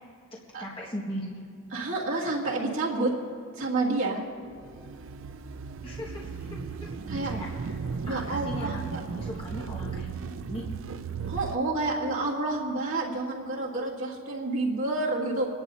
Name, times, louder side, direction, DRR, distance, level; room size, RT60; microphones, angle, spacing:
voice 1, 0.6-1.4 5.8-6.9 7.2-7.8 8.0-10.1 10.5-10.6, equal, 25° left, -5 dB, 1.7 m, -38 dB
voice 2, 1.7-3.1 3.6-4.2 7.1-7.3 8.0-9.0 11.3-15.5, right 2 dB, 85° right, -4 dB, 2.3 m, -29 dB
sound 1, 4.5-11.6, right 5 dB, 70° right, 0.4 m, -36 dB
28.0 x 11.0 x 2.8 m, 2.4 s
head